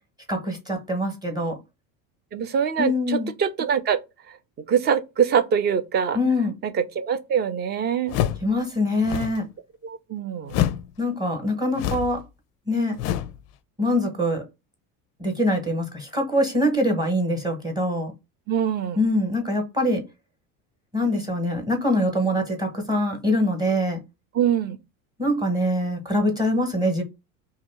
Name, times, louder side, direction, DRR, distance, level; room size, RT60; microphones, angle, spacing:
voice 1, 0.3-1.6 2.8-3.3 6.1-6.5 8.4-9.5 11.0-12.2 12.7-13.0 13.8-14.4 15.2-18.1 19.0-20.0 20.9-24.0 25.2-27.0, left 1 dB, 10° right, 0.9 m, -24 dB
voice 2, 2.3-4.0 4.7-6.2 6.8-8.2 9.8-10.5 18.5-19.0 24.3-24.8, right 8 dB, 30° right, 0.4 m, -23 dB
sound 1, 8.1-8.5 9.0-9.4 10.5-10.9 11.7-12.2 13.0-13.4, left 11 dB, 45° left, 0.4 m, -26 dB
2.8 x 2.7 x 4.3 m
cardioid pair, 145°, 37 cm